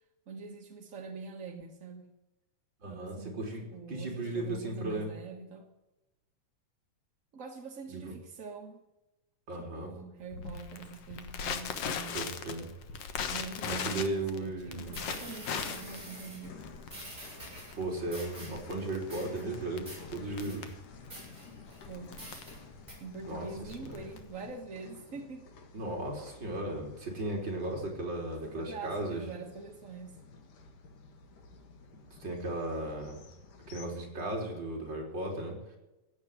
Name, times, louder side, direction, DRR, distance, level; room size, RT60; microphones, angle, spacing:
voice 1, 0.3-2.1 2.9-3.4 3.7-5.7 7.3-8.8 9.5-12.2 13.2-16.6 21.9-22.3 23.0-25.5 28.4-30.2, right 4 dB, 55° right, 3 dB, 0.8 m, -44 dB
voice 2, 2.8-5.1 7.9-8.1 9.5-9.9 12.1-12.7 13.7-15.0 17.7-20.7 23.3-24.1 25.7-29.2 32.2-33.2 33.7-35.6, right 2 dB, 35° right, 0 dB, 4.3 m, -36 dB
Crackle, 10.3-24.5, left 7 dB, 60° left, 2.0 m, -40 dB
sound 1, 14.7-33.9, left 4 dB, 80° left, 3.5 m, -52 dB
sound 2, 14.9-16.5 16.9-17.8 18.1-18.6 18.9-19.4 19.9-20.0 20.4-20.7 21.1-21.8 22.2-22.6 22.9-23.0, right 1 dB, 15° right, 8.0 m, -47 dB
16.5 x 8.5 x 9.6 m, 1.0 s
omnidirectional pair, 3.7 m